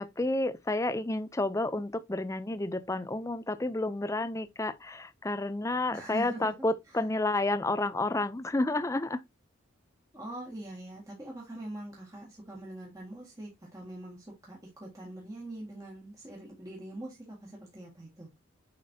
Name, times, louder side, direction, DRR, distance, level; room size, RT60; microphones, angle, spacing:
voice 1, 0.0-9.2, left 2 dB, 15° left, 0.4 m, -30 dB
voice 2, 5.9-6.5 6.9-7.0 10.1-18.3, right 1 dB, 15° right, 1.8 m, -43 dB
7.5 x 5.2 x 2.7 m
head